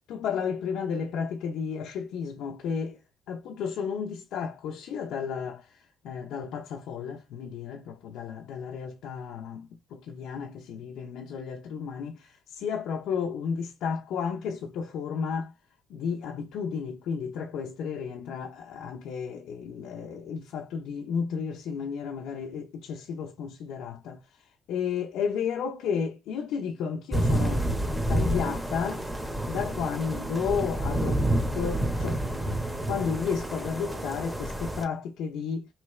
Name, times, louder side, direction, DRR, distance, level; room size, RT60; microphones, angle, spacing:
voice 1, 0.1-3.0 3.3-15.5 15.9-24.2 24.7-27.6 28.1-29.0 29.5-31.2 31.5-32.5 32.9-35.7, left 6 dB, 85° left, 0.6 m, -32 dB
sound 1, 27.1-34.8, right 1 dB, 10° right, 1.1 m, -29 dB
4.5 x 3.2 x 3.2 m
cardioid pair, 90°, 0 cm